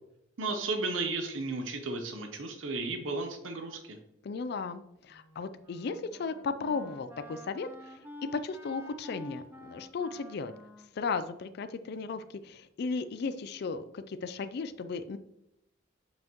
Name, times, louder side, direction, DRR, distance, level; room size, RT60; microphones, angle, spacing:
voice 1, 0.4-4.0, right 3 dB, 90° right, 6 dB, 0.8 m, -34 dB
voice 2, 4.2-10.5 10.9-15.2, left 4 dB, 55° left, 11 dB, 0.4 m, -35 dB
Wind instrument woodwind instrument, 5.1-12.3, left 2 dB, 10° right, 0.6 m, -49 dB
7.5 x 5.6 x 3.0 m, 0.81 s
head